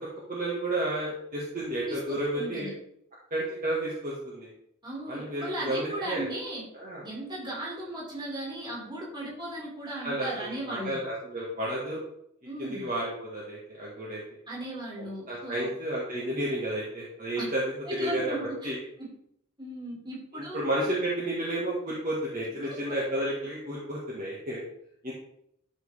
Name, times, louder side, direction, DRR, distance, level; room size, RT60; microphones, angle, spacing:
voice 1, 0.3-2.7 3.3-4.5 5.1-6.3 6.7-7.0 10.0-12.0 12.6-14.2 15.0-18.3 18.6-18.8 20.3-24.6 25.0-25.1, right 1 dB, 40° right, -5 dB, 1.9 m, -32 dB
voice 2, 1.8-2.7 4.8-6.6 7.0-11.0 12.4-12.9 14.5-15.7 17.3-17.4 17.8-18.7 19.0-19.1 19.6-20.6 22.6-23.0, right 1 dB, 20° right, -4 dB, 3.3 m, -37 dB
12.5 x 5.6 x 3.6 m, 0.73 s
head